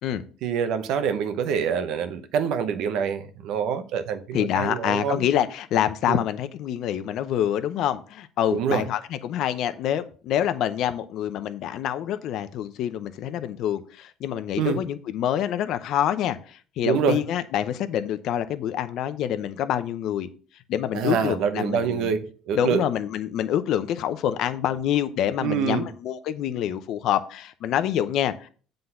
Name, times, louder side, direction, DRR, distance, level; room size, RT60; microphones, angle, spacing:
voice 1, 0.4-5.2 6.1-6.2 8.5-8.8 14.6-14.8 16.8-17.2 20.9-22.8 25.4-25.9, right 7 dB, 70° right, 0.9 m, -26 dB
voice 2, 4.3-20.3 20.7-22.1 22.5-28.5, left 10 dB, 65° left, 0.7 m, -26 dB
7.8 x 3.9 x 5.7 m
cardioid pair, 110°, 0 cm